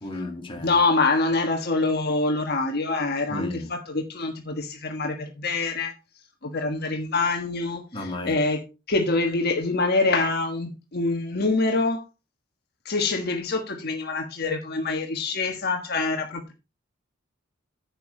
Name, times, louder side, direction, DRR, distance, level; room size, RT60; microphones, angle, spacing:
voice 1, 0.0-0.8 3.3-3.7 7.9-8.4, left 2 dB, 25° left, 2.3 m, -33 dB
voice 2, 0.6-5.9 6.4-8.6 8.9-12.0 12.8-16.5, left 3 dB, 50° left, 1.5 m, -25 dB
10.5 x 7.1 x 4.5 m
head